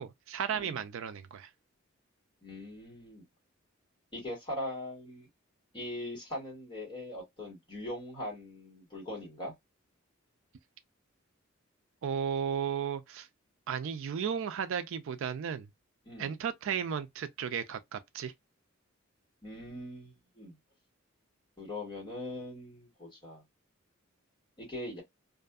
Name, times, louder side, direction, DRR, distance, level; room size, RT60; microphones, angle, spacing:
voice 1, 0.0-1.5 12.0-13.3 13.7-15.7 16.2-18.3, right 7 dB, 65° right, 0.4 m, -34 dB
voice 2, 2.4-3.2 4.1-5.3 5.7-9.5 16.0-16.3 19.4-20.5 21.6-23.4 24.6-25.0, left 1 dB, 25° left, 1.6 m, -41 dB
2.6 x 2.5 x 2.3 m
head